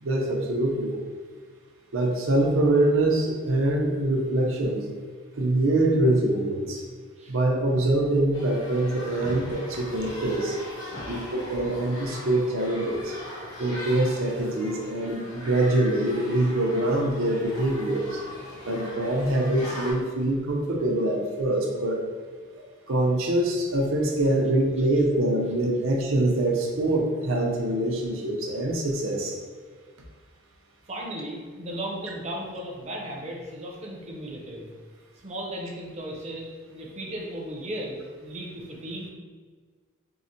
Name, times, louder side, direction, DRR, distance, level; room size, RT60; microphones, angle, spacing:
voice 1, 0.0-0.9 1.9-4.8 5.3-6.8 7.3-10.6 11.1-13.1 13.6-18.2 18.6-22.0 22.9-29.3, right 1 dB, 80° right, 0 dB, 0.6 m, -24 dB
sound 1, 8.3-19.9, left 1 dB, 70° left, 1.0 m, -40 dB
voice 2, 30.9-34.7 35.2-39.1, right 1 dB, 35° right, -1 dB, 0.6 m, -36 dB
4.6 x 2.1 x 2.6 m, 1.5 s
head